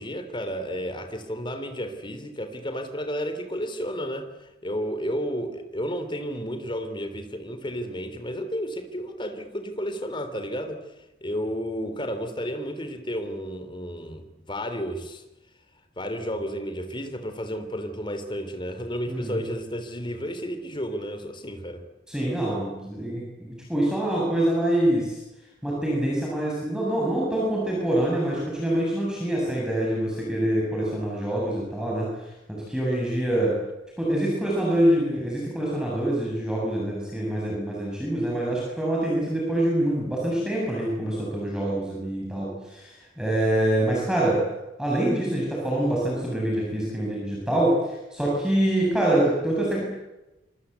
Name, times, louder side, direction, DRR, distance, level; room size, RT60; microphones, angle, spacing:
voice 1, 0.0-10.8 11.2-15.2 16.0-21.8, equal, 25° left, 8 dB, 3.5 m, -32 dB
voice 2, 19.1-19.4 22.1-25.2 25.6-32.1 32.5-33.5 34.0-44.4 44.8-49.8, right 1 dB, 5° right, -4 dB, 7.9 m, -25 dB
26.5 x 26.0 x 8.4 m, 0.98 s
head